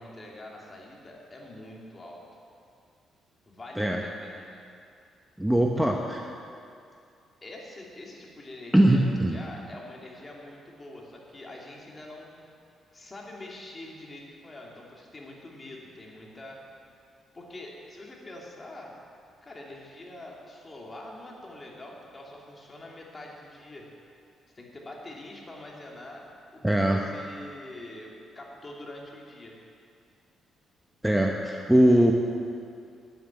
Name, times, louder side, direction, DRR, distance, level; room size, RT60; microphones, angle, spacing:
voice 1, 0.0-2.2 3.5-4.6 5.5-6.3 7.4-12.5 12.9-16.6 17.3-18.9 19.4-23.9 24.5-26.3 26.5-29.6, left 1 dB, 25° left, -2 dB, 2.9 m, -45 dB
voice 2, 5.4-6.2 8.7-9.4 26.6-27.0 31.0-32.1, right 1 dB, 5° right, 1 dB, 1.0 m, -21 dB
9.3 x 9.2 x 10.0 m, 2.4 s
cardioid pair, 90°, 0 cm